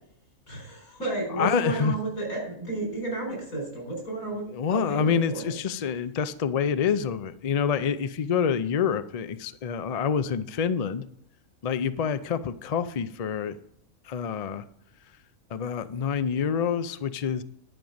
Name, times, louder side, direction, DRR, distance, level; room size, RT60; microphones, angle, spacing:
voice 1, 0.5-4.4 4.7-5.5, right 2 dB, 85° left, 0 dB, 5.1 m, -32 dB
voice 2, 1.4-1.9 4.5-11.0 11.6-13.6 14.1-14.6 15.5-17.4, left 7 dB, 60° left, 12 dB, 0.4 m, -27 dB
11.0 x 5.2 x 7.3 m, 0.68 s
omnidirectional pair, 1.4 m